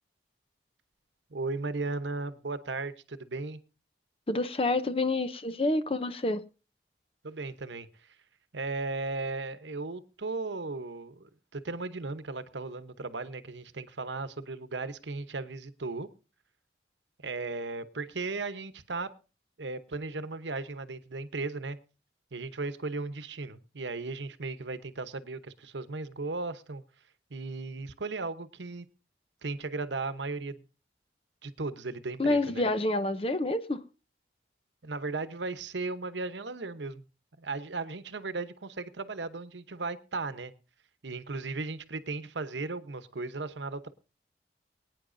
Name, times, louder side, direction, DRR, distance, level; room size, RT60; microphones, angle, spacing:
voice 1, 1.3-3.6 7.2-8.1 8.5-16.1 17.2-19.1 19.6-21.8 22.3-26.8 27.3-28.9 29.4-30.6 31.4-32.6 34.8-37.0 37.4-40.5 41.0-43.9, right 3 dB, 85° right, 0.9 m, -36 dB
voice 2, 4.3-6.4 32.2-33.8, left 2 dB, 30° left, 0.6 m, -28 dB
23.5 x 9.4 x 2.6 m
head